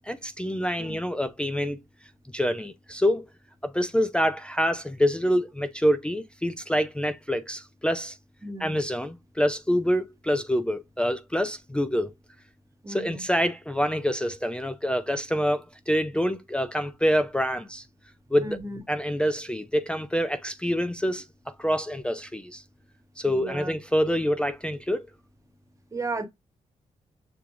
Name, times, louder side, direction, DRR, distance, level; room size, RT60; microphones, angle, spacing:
voice 1, 0.1-1.8 2.3-3.3 3.6-8.2 8.6-12.1 12.9-17.8 18.3-18.6 18.9-21.2 21.6-22.6 23.2-25.1, equal, 10° left, 0.3 m, -26 dB
voice 2, 8.4-8.8 12.8-13.2 18.4-18.8 23.2-23.7 25.9-26.3, right 2 dB, 25° right, 0.8 m, -34 dB
6.8 x 2.4 x 2.9 m
wide cardioid pair, 145°, 13 cm